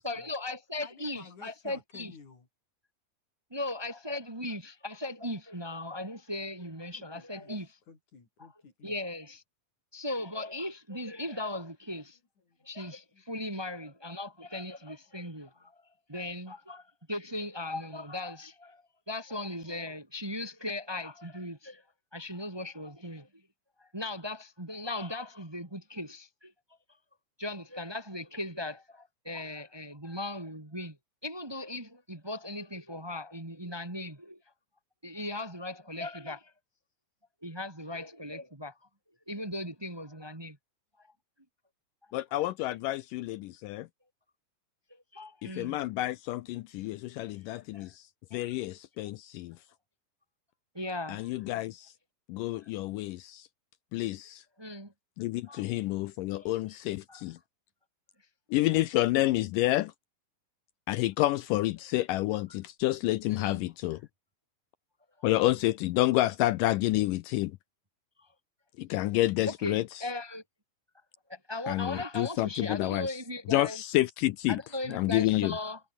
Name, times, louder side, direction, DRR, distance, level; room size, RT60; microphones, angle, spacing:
voice 1, 0.0-2.1 3.5-7.8 8.8-9.4 9.9-12.2 12.6-15.8 16.1-21.8 22.1-23.3 23.8-26.5 27.4-31.0 31.2-34.4 35.0-36.5 37.4-38.8 39.3-40.6 44.9-45.8 47.5-47.9 48.3-48.5 49.0-49.1 50.7-51.3 52.6-52.7 54.6-54.9 55.5-55.6 56.4-56.5 57.1-57.2 63.3-63.6 65.2-65.3 68.2-68.3 69.5-70.4 71.3-73.8 74.5-75.8, left 1 dB, 25° right, 0.6 m, -38 dB
voice 2, 0.8-2.5 6.9-7.5 7.9-8.9 12.4-12.6 13.1-13.2 15.5-15.7, left 5 dB, 50° left, 6.3 m, -53 dB
voice 3, 42.1-43.9 45.4-48.1 48.3-49.6 51.1-51.9 52.3-53.5 53.9-54.4 55.2-57.4 58.5-59.9 60.9-64.0 65.2-67.6 68.8-69.8 71.7-73.1 73.5-74.6 74.9-75.6, left 16 dB, 85° left, 2.0 m, -29 dB
omnidirectional pair, 4.3 m